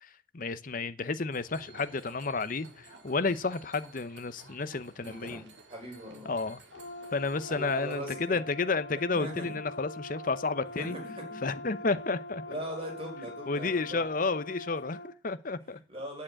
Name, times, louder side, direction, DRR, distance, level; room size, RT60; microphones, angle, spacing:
voice 1, 0.0-5.4 6.2-6.6 7.1-11.0 11.4-12.4 13.5-15.8, left 3 dB, 45° left, 13 dB, 0.7 m, -31 dB
sound 1, 1.3-8.0, right 3 dB, 65° right, 2.5 m, -54 dB
voice 2, 5.0-6.3 7.5-8.4 9.1-9.6 10.7-11.4 12.5-14.1 15.7-16.2, equal, 30° right, 1 dB, 4.8 m, -40 dB
Brass instrument, 6.7-15.1, left 2 dB, 75° left, 1.0 m, -43 dB
8.8 x 7.3 x 8.8 m, 0.37 s
head